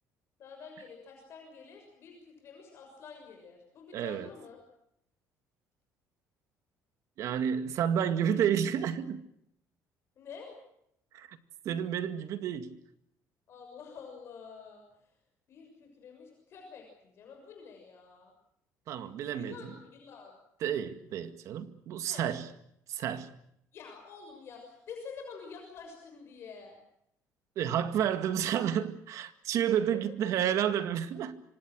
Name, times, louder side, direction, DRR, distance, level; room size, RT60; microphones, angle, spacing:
voice 1, 0.4-4.6 10.2-10.6 13.5-15.1 15.5-18.3 19.3-20.4 22.1-22.4 23.7-26.8 29.7-30.6, left 5 dB, 40° left, 6.6 m, -48 dB
voice 2, 3.9-4.3 7.2-9.2 11.1-11.4 11.6-12.8 18.9-19.5 20.6-22.5 22.9-23.4 27.6-31.4, right 9 dB, 55° right, 2.0 m, -30 dB
26.5 x 25.5 x 6.4 m
cardioid pair, 175°, 6 cm